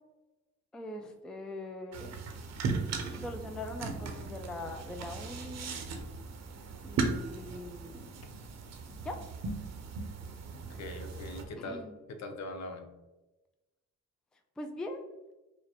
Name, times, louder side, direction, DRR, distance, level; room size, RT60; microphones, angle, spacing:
voice 1, 0.7-2.2 3.1-5.8 6.8-8.2 9.0-9.2 11.6-11.9 14.6-15.0, left 1 dB, ahead, 5 dB, 0.3 m, -42 dB
sound 1, 1.9-11.5, right 4 dB, 60° right, 0.6 m, -38 dB
voice 2, 10.5-11.8 12.1-12.9, left 2 dB, 60° left, 6 dB, 0.7 m, -41 dB
4.7 x 2.2 x 2.9 m, 1.1 s
cardioid pair, 90°, 30 cm